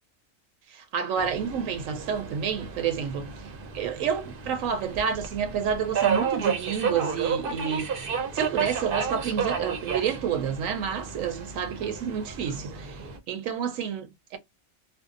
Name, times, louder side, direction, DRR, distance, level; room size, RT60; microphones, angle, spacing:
voice 1, 0.7-3.3 3.7-7.9 8.3-13.0 13.3-14.4, right 7 dB, 75° right, 1.0 m, -29 dB
Subway metro underground, 1.2-13.2, right 6 dB, 55° right, 0.7 m, -32 dB
2.6 x 2.0 x 2.4 m
omnidirectional pair, 1.4 m